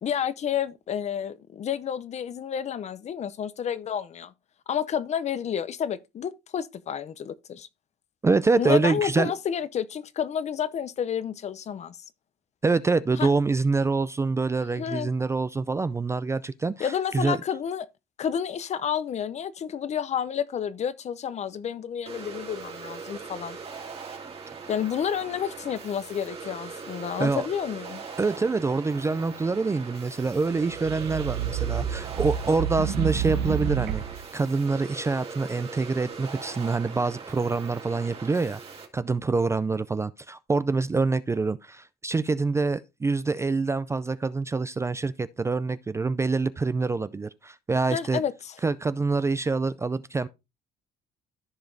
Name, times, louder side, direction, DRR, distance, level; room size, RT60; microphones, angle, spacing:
voice 1, 0.0-4.3 4.7-7.7 8.6-12.0 13.2-13.3 14.8-15.1 16.8-17.9 18.2-23.6 24.7-28.0 47.9-48.5, left 8 dB, 40° left, 0.6 m, -30 dB
voice 2, 8.2-9.3 12.6-17.4 27.2-27.4 28.2-34.0 34.3-38.6 38.9-48.2 48.6-50.3, right 3 dB, 15° right, 0.3 m, -26 dB
sound 1, 22.1-38.9, right 5 dB, 35° right, 2.1 m, -41 dB
sound 2, 30.6-34.2, right 10 dB, 80° right, 0.8 m, -29 dB
14.0 x 4.9 x 2.6 m
cardioid pair, 110°, 17 cm